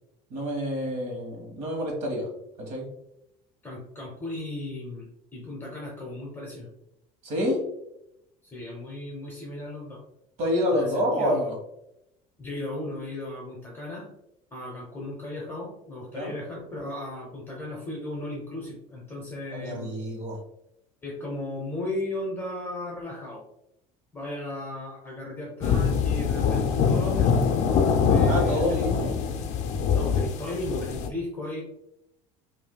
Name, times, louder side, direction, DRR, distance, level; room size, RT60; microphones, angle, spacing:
voice 1, 0.3-2.3 2.6-2.8 7.2-7.6 10.4-11.5 16.1-16.3 19.5-20.4 28.3-29.1, equal, 55° right, 0 dB, 1.4 m, -27 dB
voice 2, 3.6-6.7 8.4-10.0 10.7-11.5 12.4-14.1 14.5-19.9 21.0-23.4 24.1-27.5 28.1-28.8 29.9-31.6, left 1 dB, 15° left, -3 dB, 0.9 m, -36 dB
sound 1, 25.6-31.1, left 6 dB, 50° left, 0.4 m, -24 dB
5.6 x 2.6 x 2.2 m, 0.83 s
cardioid pair, 150°, 15 cm